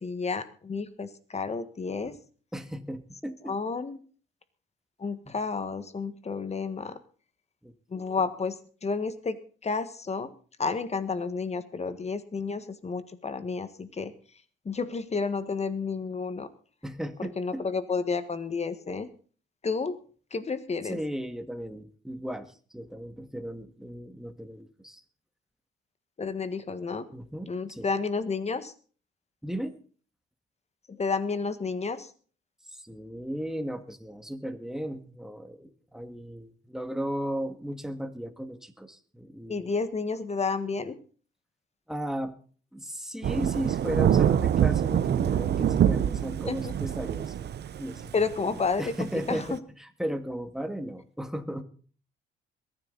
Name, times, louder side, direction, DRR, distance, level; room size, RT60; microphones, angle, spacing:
voice 1, 0.0-2.2 3.5-4.0 5.0-7.0 7.9-10.3 10.6-14.1 14.6-16.5 17.2-19.1 19.6-20.0 20.3-21.0 26.2-27.0 27.5-28.7 30.9-32.1 39.5-41.0 46.5-46.7 48.1-49.4, left 4 dB, 35° left, 13 dB, 1.5 m, -31 dB
voice 2, 2.5-3.6 5.3-5.4 7.6-8.3 16.8-17.7 20.8-25.0 27.1-27.9 29.4-29.8 32.7-39.7 41.9-42.3 42.7-48.1 48.5-51.6, equal, ahead, 8 dB, 1.9 m, -36 dB
Thunder / Rain, 43.2-49.6, right 9 dB, 55° right, 0.9 m, -25 dB
22.0 x 10.0 x 4.0 m, 0.41 s
cardioid pair, 90°, 20 cm